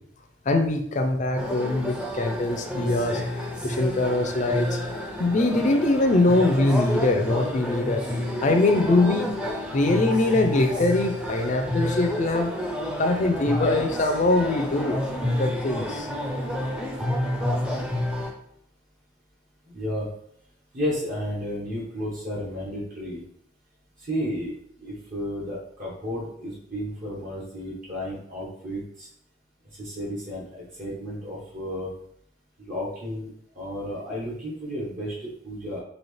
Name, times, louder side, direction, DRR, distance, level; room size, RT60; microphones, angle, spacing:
voice 1, 0.5-3.2 3.6-8.0 8.4-9.3 9.7-12.5 12.9-15.0 15.4-16.1, left 2 dB, 40° left, 5 dB, 0.4 m, -23 dB
sound 1, 1.4-18.3, left 1 dB, 5° right, 0.6 m, -29 dB
voice 2, 19.7-20.1 20.7-23.2 24.0-29.1 29.8-31.9 32.6-35.8, equal, 45° right, -6 dB, 1.0 m, -32 dB
4.2 x 2.8 x 3.2 m, 0.69 s
head